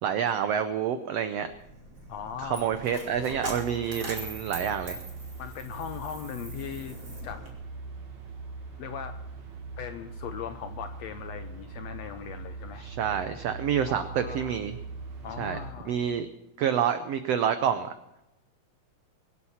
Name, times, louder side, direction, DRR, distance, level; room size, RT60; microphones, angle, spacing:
voice 1, 0.0-1.5 2.4-5.0 12.8-14.8 15.4-15.6 15.9-16.3 16.6-17.9, right 8 dB, 90° right, 10 dB, 1.4 m, -28 dB
Coin (dropping), 1.4-7.5, right 2 dB, 30° right, 2.9 m, -42 dB
voice 2, 2.1-2.7 5.4-7.0 7.2-7.5 8.8-9.2 9.8-12.9 13.9-14.6 15.2-16.0, left 8 dB, 80° left, 9 dB, 1.5 m, -39 dB
sound 1, 3.2-15.7, right 3 dB, 60° right, 3.5 m, -41 dB
23.0 x 8.5 x 5.8 m, 0.90 s
omnidirectional pair, 3.8 m